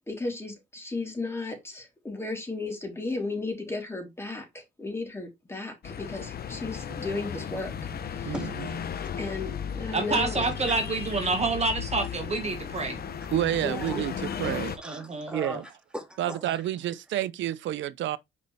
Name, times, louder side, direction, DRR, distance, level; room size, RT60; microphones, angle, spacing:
voice 1, 0.1-7.7 8.1-8.4 9.2-10.5 13.6-14.0, left 3 dB, 10° left, 3.6 m, -35 dB
sound 1, 5.8-14.8, left 7 dB, 50° left, 1.0 m, -35 dB
voice 2, 8.2-9.0 10.7-10.8 13.8-13.9 14.2-16.6, equal, 5° right, 2.2 m, -40 dB
voice 3, 9.9-13.0 14.8-15.4, right 3 dB, 35° right, 1.8 m, -28 dB
voice 4, 13.3-14.8 15.3-15.6 16.2-18.2, right 12 dB, 75° right, 0.6 m, -29 dB
6.4 x 5.2 x 3.4 m
cardioid pair, 90°, 20 cm